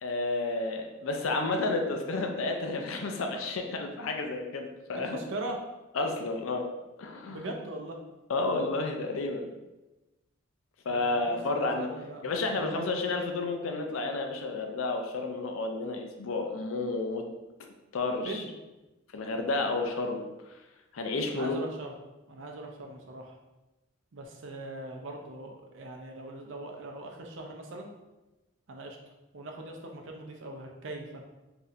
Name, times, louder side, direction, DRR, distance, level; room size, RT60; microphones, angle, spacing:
voice 1, 0.0-5.2 6.0-6.7 7.0-7.5 8.3-9.5 10.9-11.9 12.2-17.2 17.9-18.4 19.1-20.2 20.9-21.6, left 3 dB, 90° left, 4 dB, 0.5 m, -31 dB
voice 2, 5.1-5.6 7.3-8.0 10.9-12.2 12.5-12.8 18.2-18.5 21.3-21.9 22.3-23.3 24.1-27.9 28.7-29.0 29.3-31.2, right 2 dB, 70° right, 2 dB, 0.5 m, -40 dB
4.0 x 2.7 x 2.5 m, 1.1 s
head